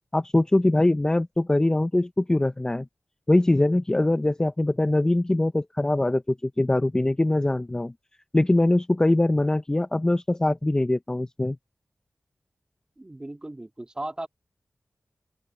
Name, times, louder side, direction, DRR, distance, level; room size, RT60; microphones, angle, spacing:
voice 1, 0.1-2.9 3.3-7.9 8.3-11.6, left 2 dB, 15° left, 0.4 m, -22 dB
voice 2, 13.0-14.3, right 1 dB, 20° right, 2.0 m, -36 dB
open air
wide cardioid pair, 110°, 4 cm